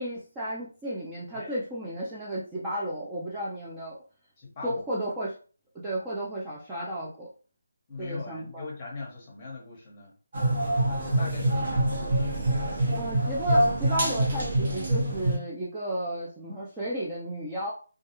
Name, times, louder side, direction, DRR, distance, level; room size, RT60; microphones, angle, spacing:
voice 1, 0.0-4.0 4.6-5.3 5.7-7.3 8.0-8.7 13.0-17.7, right 1 dB, 10° right, -8 dB, 0.4 m, -33 dB
voice 2, 4.4-4.8 7.9-10.1 10.9-12.3, left 3 dB, 20° left, -3 dB, 0.9 m, -40 dB
sound 1, 10.3-15.4, right 1 dB, 40° right, 0.9 m, -25 dB
2.3 x 2.2 x 2.9 m, 0.38 s
figure-of-eight pair, 170°, 0 cm